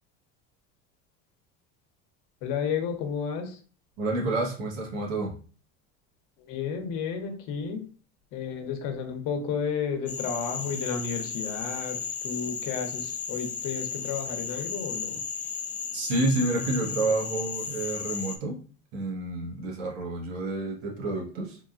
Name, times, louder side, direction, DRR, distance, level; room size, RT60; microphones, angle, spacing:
voice 1, 2.4-3.6 6.5-7.9 8.3-15.2, left 6 dB, 70° left, 5 dB, 0.9 m, -32 dB
voice 2, 4.0-5.4 15.9-18.6 18.9-21.6, right 2 dB, 80° right, -1 dB, 1.2 m, -29 dB
Frog, 10.1-18.4, left 6 dB, 25° left, 0.4 m, -34 dB
3.6 x 2.3 x 2.4 m, 0.40 s
supercardioid pair, 105°, 33 cm